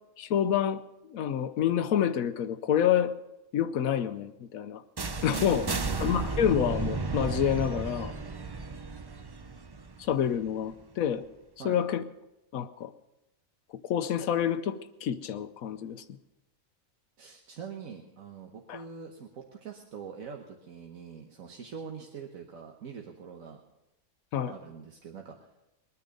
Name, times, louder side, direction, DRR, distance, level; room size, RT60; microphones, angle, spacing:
voice 1, 0.2-0.8 1.1-3.1 3.5-4.8 5.2-5.7 6.0-8.1 10.0-11.2 11.6-12.0 12.5-12.9 13.8-16.0 18.7-18.8 24.3-24.5, left 9 dB, 85° left, 11 dB, 1.1 m, -28 dB
sound 1, 5.0-10.8, right 3 dB, 40° right, 0.3 m, -34 dB
voice 2, 5.3-6.0 11.6-11.8 17.2-23.6 24.5-25.5, right 6 dB, 75° right, 1 dB, 1.5 m, -43 dB
21.0 x 9.7 x 5.2 m, 0.93 s
omnidirectional pair, 1.4 m